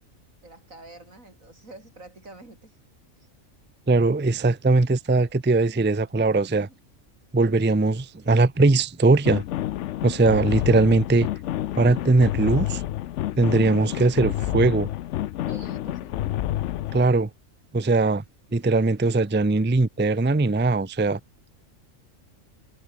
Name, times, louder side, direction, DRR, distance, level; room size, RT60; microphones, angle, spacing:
voice 1, 0.4-2.7 3.2-3.3 6.5-6.8 7.4-7.6 13.3-13.7 15.5-16.2, right 2 dB, 85° right, 6.0 m, -47 dB
voice 2, 3.9-6.7 7.3-9.4 10.0-11.3 11.7-12.8 13.4-14.9 16.9-17.3 17.7-18.2 18.5-21.2, right 3 dB, 10° right, 0.5 m, -20 dB
sound 1, 9.2-17.1, left 13 dB, 70° left, 0.9 m, -29 dB
omnidirectional pair, 1.4 m